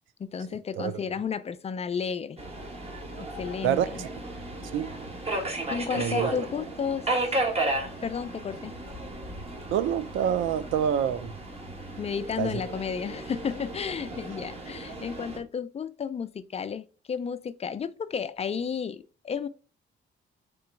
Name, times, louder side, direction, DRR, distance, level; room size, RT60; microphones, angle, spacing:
voice 1, 0.2-2.4 3.2-4.0 5.7-7.4 8.0-8.7 12.0-19.5, left 6 dB, 30° left, 0.4 m, -33 dB
Subway metro underground, 2.4-15.4, right 2 dB, 30° right, 1.2 m, -34 dB
voice 2, 3.6-4.1 4.7-4.9 6.0-6.3 9.7-11.3 12.4-12.6, right 9 dB, 80° right, 0.5 m, -27 dB
3.8 x 3.0 x 4.5 m
cardioid pair, 90°, 20 cm